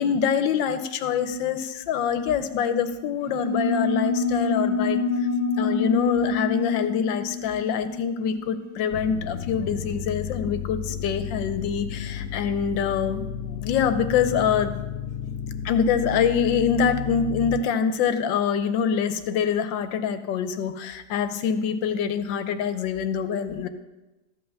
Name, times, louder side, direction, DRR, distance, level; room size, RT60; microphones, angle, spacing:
voice 1, 0.0-5.3 5.6-14.8 15.6-23.7, left 7 dB, 85° left, 10 dB, 1.4 m, -25 dB
sound 1, 3.2-9.2, left 4 dB, 85° right, 4.1 m, -26 dB
sound 2, 8.9-17.6, left 8 dB, 60° left, 0.9 m, -33 dB
14.0 x 5.6 x 6.6 m, 1.1 s
omnidirectional pair, 2.0 m